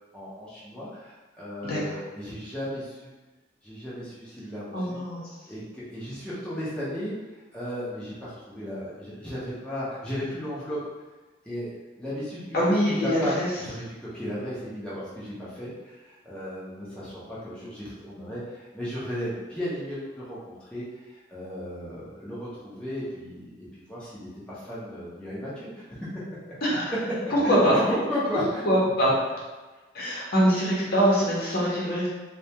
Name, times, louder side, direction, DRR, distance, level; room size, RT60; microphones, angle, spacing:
voice 1, 0.1-3.1 3.6-5.0 5.5-7.1 7.5-10.8 11.5-25.8 26.7-26.8 27.4-28.6, equal, 5° left, -10 dB, 0.6 m, -35 dB
voice 2, 4.7-5.2 12.5-13.5 26.6-26.9 27.3-27.8 28.6-29.1 29.9-32.1, equal, 55° left, -7 dB, 0.7 m, -23 dB
2.3 x 2.1 x 2.8 m, 1.2 s
head